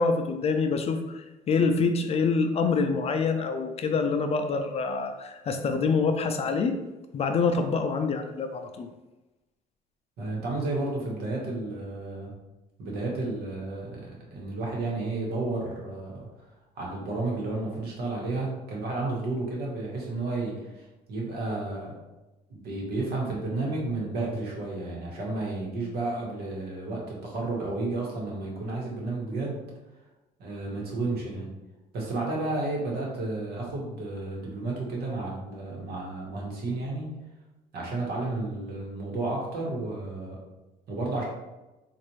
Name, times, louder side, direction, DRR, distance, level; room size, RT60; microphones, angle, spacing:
voice 1, 0.0-6.8 7.1-8.9, left 4 dB, 40° left, 6 dB, 0.4 m, -26 dB
voice 2, 10.2-12.3 12.8-14.0 14.3-16.3 16.8-21.9 22.5-29.6 30.4-31.5 31.9-37.1 37.7-40.4 40.9-41.2, right 2 dB, 65° right, -2 dB, 1.3 m, -32 dB
4.1 x 2.5 x 3.0 m, 1.1 s
cardioid pair, 110°, 17 cm